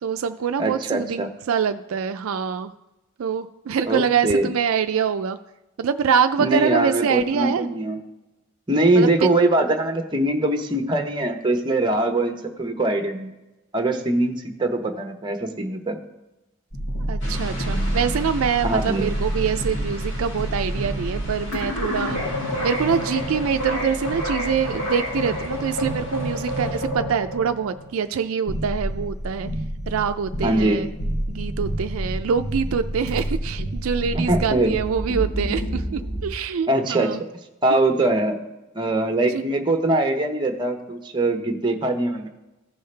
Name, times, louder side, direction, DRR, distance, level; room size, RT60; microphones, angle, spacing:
voice 1, 0.0-2.7 3.2-5.4 5.8-7.7 9.0-9.3 17.1-22.2 22.6-29.5 29.9-30.9 31.3-37.2 39.3-39.4, right 7 dB, 70° right, 9 dB, 0.4 m, -25 dB
voice 2, 0.6-1.3 3.9-4.5 6.4-8.0 8.7-13.3 13.7-16.0 18.6-19.1 30.4-30.8 34.1-34.7 36.7-37.1 37.6-38.4 38.7-42.3, right 2 dB, 20° right, 4 dB, 0.9 m, -22 dB
sound 1, 16.7-36.2, equal, 90° left, 3.7 m, -28 dB
sound 2, 17.2-26.8, equal, 60° left, 2.4 m, -37 dB
15.5 x 5.5 x 3.3 m, 1.0 s
head